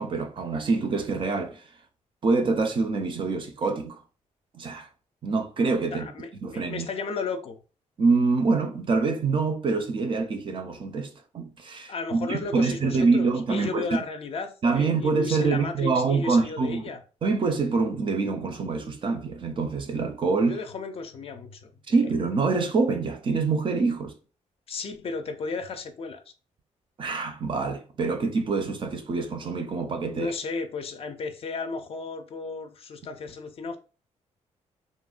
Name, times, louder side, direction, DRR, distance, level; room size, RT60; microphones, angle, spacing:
voice 1, 0.0-1.6 2.2-4.0 4.5-4.9 5.2-6.1 6.4-6.9 8.0-14.0 14.6-16.9 17.2-20.6 21.9-24.1 27.0-30.3, right 4 dB, 40° right, 0.5 m, -25 dB
voice 2, 5.9-7.6 11.9-17.0 20.5-22.0 24.7-26.3 30.1-33.8, left 4 dB, 50° left, 0.4 m, -34 dB
2.9 x 2.1 x 2.4 m
cardioid pair, 110°, 13 cm